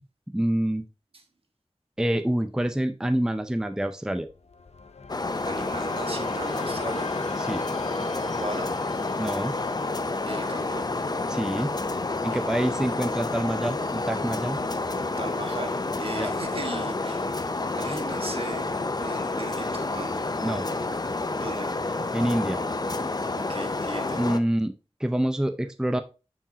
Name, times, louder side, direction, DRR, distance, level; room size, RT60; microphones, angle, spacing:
voice 1, 0.3-0.8 2.0-4.3 7.4-7.7 9.2-9.6 11.3-11.8 12.2-14.6 16.2-16.3 20.4-20.7 22.1-22.6 24.2-24.7 25.0-26.0, right 1 dB, 5° right, 0.5 m, -26 dB
sound 1, 4.3-20.3, left 4 dB, 85° left, 0.6 m, -44 dB
sound 2, 5.1-24.4, left 3 dB, 40° left, 0.6 m, -29 dB
voice 2, 5.4-7.1 8.3-8.7 10.2-10.9 12.3-12.4 15.2-17.3 17.8-20.1 21.4-21.7 23.5-24.2, right 2 dB, 60° right, 1.4 m, -37 dB
8.8 x 4.7 x 2.8 m
wide cardioid pair, 70°, 11 cm